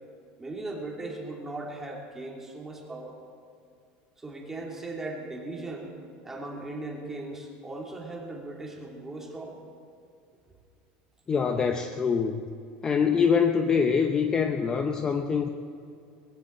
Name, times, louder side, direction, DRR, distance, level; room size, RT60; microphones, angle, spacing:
voice 1, 0.4-3.2 4.2-5.9 6.2-9.6, right 2 dB, 10° right, -1 dB, 2.7 m, -38 dB
voice 2, 11.3-12.5 12.8-15.5, left 6 dB, 20° left, 6 dB, 0.7 m, -24 dB
20.0 x 16.0 x 4.4 m, 2.5 s
supercardioid pair, 150°, 4 cm